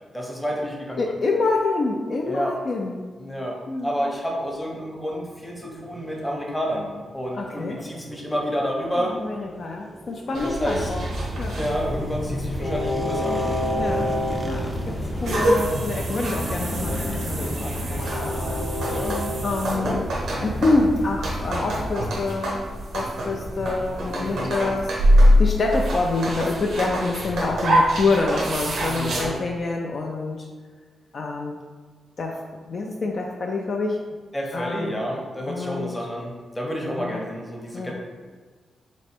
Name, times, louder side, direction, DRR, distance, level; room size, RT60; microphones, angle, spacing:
voice 1, 0.1-1.1 2.2-2.5 3.2-3.6 3.8-9.1 10.3-11.1 11.5-13.4 18.8-19.3 19.7-20.0 24.1-24.5 28.9-29.4 34.3-37.9, equal, 10° left, -2 dB, 0.8 m, -29 dB
voice 2, 1.0-3.0 3.7-3.9 7.3-7.8 9.0-11.0 11.4-11.6 13.8-14.1 14.5-18.7 19.4-20.1 20.4-22.7 22.9-24.9 25.4-30.5 31.1-31.5 32.2-32.4 32.6-34.0 34.5-34.9 35.5-35.9 37.0-37.2 37.7-37.9, left 3 dB, 45° left, 0 dB, 0.4 m, -26 dB
sound 1, 4.2-19.4, equal, 15° right, 0.4 m, -38 dB
sound 2, 10.3-29.3, equal, 80° right, 0.8 m, -25 dB
Train, 10.6-21.9, left 1 dB, 85° left, 1.0 m, -30 dB
3.2 x 3.0 x 4.3 m, 1.5 s
wide cardioid pair, 135°, 0 cm